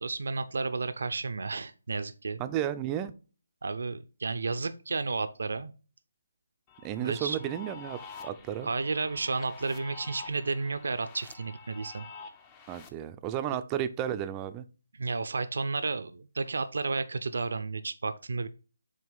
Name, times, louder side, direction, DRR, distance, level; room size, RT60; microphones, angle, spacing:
voice 1, 0.0-2.4 3.6-5.7 7.0-7.4 8.6-12.1 15.0-18.5, right 3 dB, 65° right, 11 dB, 0.6 m, -32 dB
voice 2, 2.4-3.1 6.8-8.7 12.7-14.6, right 11 dB, 20° right, 10 dB, 0.5 m, -33 dB
sound 1, 6.7-12.9, left 4 dB, 20° left, 0.7 m, -48 dB
7.5 x 2.9 x 5.4 m, 0.35 s
figure-of-eight pair, 150°, 0 cm